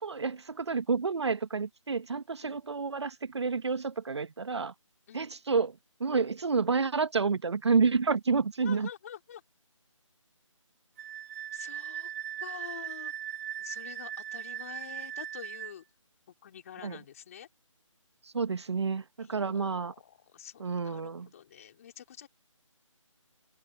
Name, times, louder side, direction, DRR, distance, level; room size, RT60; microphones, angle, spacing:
voice 1, 0.0-4.7 5.1-5.7 6.0-8.9 16.8-17.0 18.3-19.9 20.6-21.3, right 5 dB, 55° right, 1.2 m, -29 dB
voice 2, 8.6-9.4 11.5-12.1 12.4-13.1 13.6-15.8 16.4-17.5 19.2-22.3, left 9 dB, 25° left, 3.9 m, -47 dB
Wind instrument woodwind instrument, 11.0-15.7, right 10 dB, 30° right, 1.3 m, -39 dB
figure-of-eight pair, 165°, 17 cm